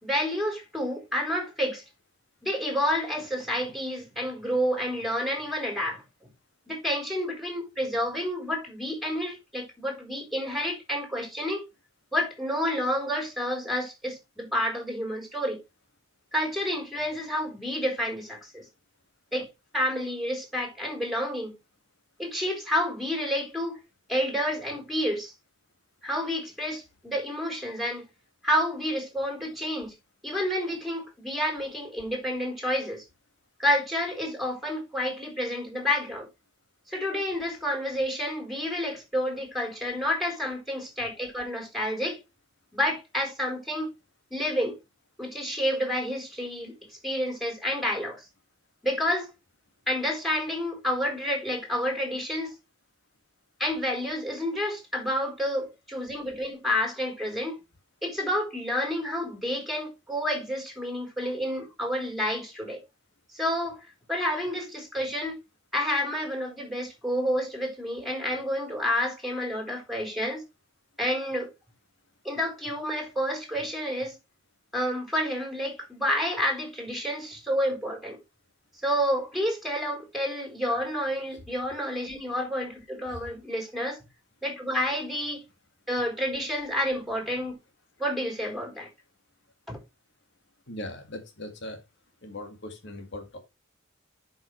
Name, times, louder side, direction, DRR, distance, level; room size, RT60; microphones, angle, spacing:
voice 1, 0.0-1.8 2.4-6.0 6.7-11.6 12.1-15.6 16.3-18.6 19.3-21.5 22.2-23.8 24.1-25.3 26.0-28.0 28.4-29.9 30.2-33.0 33.6-36.3 36.9-42.2 42.7-43.9 44.3-44.8 45.2-48.2 48.8-49.3 49.9-52.5 53.6-57.6 58.0-62.8 63.3-65.4 65.7-70.4 71.0-71.5 72.2-74.2 74.7-78.2 78.8-84.0 84.4-85.4 85.9-87.6 88.0-88.9 89.7-89.8, equal, ahead, 4.0 m, -29 dB
voice 2, 90.7-91.8 92.2-93.4, left 1 dB, 60° left, 2.0 m, -39 dB
11.0 x 5.7 x 3.2 m
head